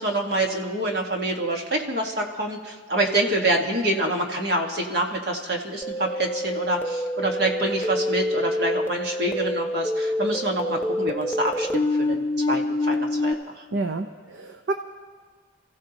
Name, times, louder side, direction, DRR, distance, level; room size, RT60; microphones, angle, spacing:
voice 1, 0.0-13.6, right 1 dB, 55° right, 1 dB, 1.7 m, -26 dB
sound 1, 5.8-13.3, left 1 dB, 10° left, 0.7 m, -26 dB
voice 2, 13.7-14.7, right 2 dB, 75° right, 6 dB, 0.8 m, -29 dB
29.0 x 15.5 x 3.0 m, 1.5 s
head